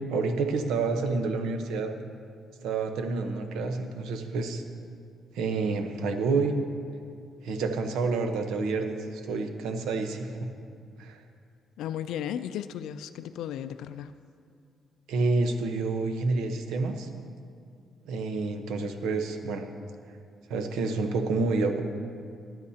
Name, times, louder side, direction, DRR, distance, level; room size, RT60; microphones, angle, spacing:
voice 1, 0.1-1.9 2.6-4.6 5.3-6.5 7.4-10.5 11.0-11.2 15.1-17.1 18.1-19.6 20.5-21.8, right 3 dB, 90° right, 6 dB, 0.9 m, -28 dB
voice 2, 11.8-14.1, left 10 dB, 85° left, 10 dB, 0.3 m, -35 dB
16.5 x 11.0 x 2.8 m, 2.3 s
cardioid pair, 90°, 0 cm